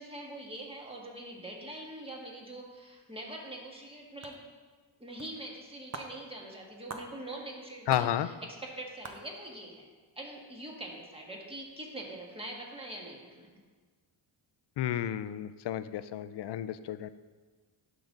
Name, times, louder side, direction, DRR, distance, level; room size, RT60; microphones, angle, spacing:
voice 1, 0.0-4.4 5.0-9.9 10.1-13.5, right 1 dB, 10° right, -1 dB, 1.7 m, -43 dB
sound 1, 4.2-4.4 5.2-5.3 5.6-5.7 5.9-6.1 6.9-7.1 7.9-8.1 8.7-8.8 9.0-9.2, right 3 dB, 30° right, 0.8 m, -41 dB
voice 2, 7.9-8.3 14.8-17.1, left 11 dB, 55° left, 13 dB, 0.5 m, -32 dB
12.0 x 3.9 x 3.9 m, 1.4 s
cardioid pair, 75°, 49 cm